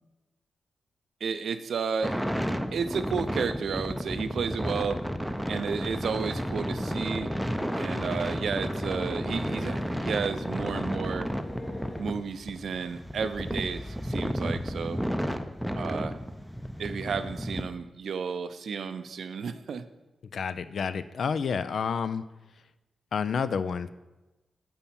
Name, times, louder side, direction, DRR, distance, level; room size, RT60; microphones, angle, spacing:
voice 1, 1.2-2.2 2.7-5.0 5.5-7.3 7.7-11.3 12.0-15.0 15.7-16.2 16.8-19.8, right 6 dB, 70° right, 11 dB, 0.4 m, -32 dB
sound 1, 2.0-17.6, equal, ahead, 0.5 m, -32 dB
sound 2, 5.3-12.0, left 1 dB, 35° left, 1.2 m, -47 dB
voice 2, 20.3-22.2 23.1-23.9, left 6 dB, 70° left, 13 dB, 0.3 m, -29 dB
7.1 x 5.3 x 4.3 m, 1.1 s
supercardioid pair, 45°, 0 cm